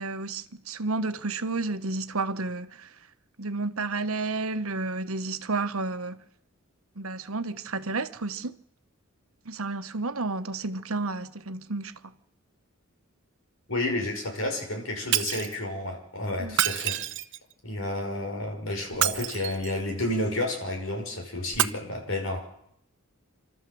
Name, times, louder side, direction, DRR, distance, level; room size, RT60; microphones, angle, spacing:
voice 1, 0.0-2.9 3.4-6.2 7.0-8.5 9.4-11.9 16.4-16.6, right 3 dB, 85° right, 1.2 m, -31 dB
voice 2, 13.7-17.0 17.6-22.4, left 1 dB, 70° left, 6.1 m, -31 dB
Shatter, 15.1-15.6 16.5-17.5 18.9-19.8 21.5-21.6, right 12 dB, 65° right, 0.8 m, -27 dB
28.5 x 13.0 x 7.8 m
head